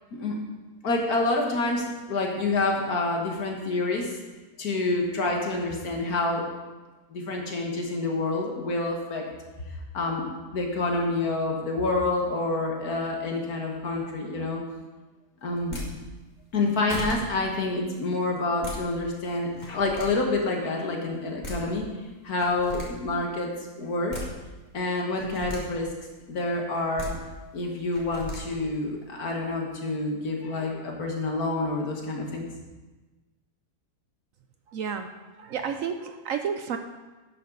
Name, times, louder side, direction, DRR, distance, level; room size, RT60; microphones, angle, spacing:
voice 1, 0.8-4.2 4.6-6.4 7.1-9.2 9.9-10.2 10.5-14.6 15.4-15.8 16.5-21.9 22.2-24.2 24.7-25.9 26.3-27.1 27.5-32.4, left 2 dB, 65° left, 1 dB, 2.1 m, -28 dB
sound 1, 15.6-15.9 16.5-16.6 16.9-17.2 18.4-18.8 19.5-20.1 21.1-21.2 21.4-21.6 22.4-22.9 23.8-24.3 25.1-25.6 26.7-27.1 27.9-28.4, equal, 25° left, 2.4 m, -36 dB
voice 2, 34.7-35.1 35.4-36.8, right 7 dB, 65° right, 7 dB, 0.9 m, -31 dB
12.0 x 9.0 x 4.0 m, 1.2 s
omnidirectional pair, 1.7 m